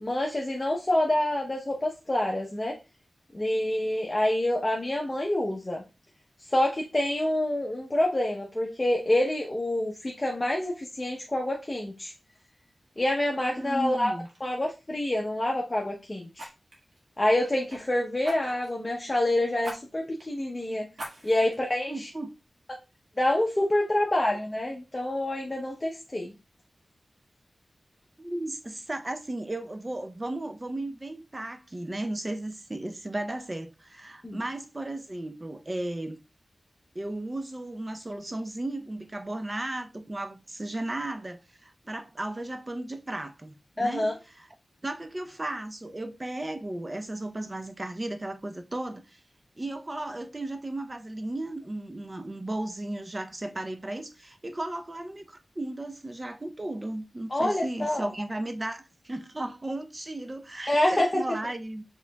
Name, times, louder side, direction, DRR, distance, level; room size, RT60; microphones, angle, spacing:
voice 1, 0.0-2.8 3.3-5.8 6.5-12.1 13.0-14.1 14.4-16.5 17.2-20.9 21.2-22.1 23.2-26.3 34.2-34.4 43.8-44.1 57.3-58.1 60.7-61.2, left 1 dB, 25° left, 0.8 m, -27 dB
voice 2, 13.4-14.3 21.9-22.3 28.2-36.2 36.9-44.1 44.4-44.5 44.8-49.2 49.6-61.8, right 1 dB, 30° right, 0.6 m, -35 dB
Fire, 13.7-13.9 14.2-14.4 16.3-17.8 18.2-18.8 19.6-19.8 20.2-20.3 20.9-21.6 22.1-22.2, equal, 85° right, 1.6 m, -41 dB
4.9 x 3.7 x 2.2 m
wide cardioid pair, 65°, 0 cm